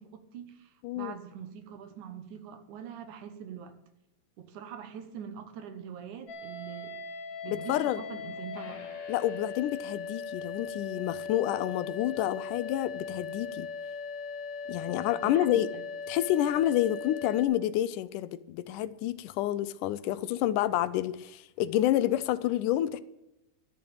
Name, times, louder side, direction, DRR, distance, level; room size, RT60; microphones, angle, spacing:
voice 1, 0.0-3.8 4.4-7.0 7.4-8.9 15.2-15.8, right 8 dB, 75° right, 2.6 m, -43 dB
sound 1, 6.3-17.5, left 5 dB, 55° left, 2.4 m, -39 dB
voice 2, 7.5-8.0 9.1-13.7 14.7-15.7 16.1-23.0, left 13 dB, 90° left, 2.2 m, -29 dB
12.0 x 7.1 x 8.7 m
omnidirectional pair, 3.6 m